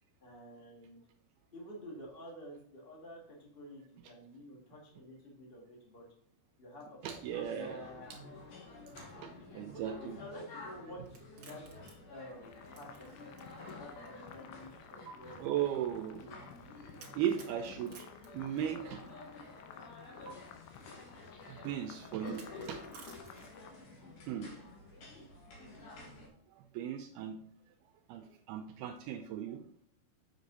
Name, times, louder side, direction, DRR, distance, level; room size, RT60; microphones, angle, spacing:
voice 1, 0.2-1.0 1.5-6.0 6.6-7.2 7.5-8.1 9.2-9.4 9.7-11.6 12.1-13.1 13.6-15.4 16.2-16.4 24.2-24.7 25.1-25.3 25.6-25.8, equal, 25° left, -2 dB, 1.2 m, -50 dB
sound 1, 7.0-26.3, left 2 dB, 55° left, 2.8 m, -51 dB
voice 2, 7.0-7.8 9.2-10.2 14.9-15.1 15.4-16.3 17.1-18.1 18.3-19.0 21.5-22.8 24.3-24.5 26.5-27.4 28.1-29.6, right 10 dB, 85° right, 6 dB, 2.2 m, -37 dB
sound 2, 11.1-13.7 14.0-14.1 15.0-15.1 17.0-19.1 20.2-20.3 22.2-23.7, right 6 dB, 45° right, 2.0 m, -55 dB
sound 3, 12.4-23.7, left 8 dB, 85° left, 2.8 m, -55 dB
7.3 x 7.2 x 4.0 m, 0.64 s
omnidirectional pair, 5.0 m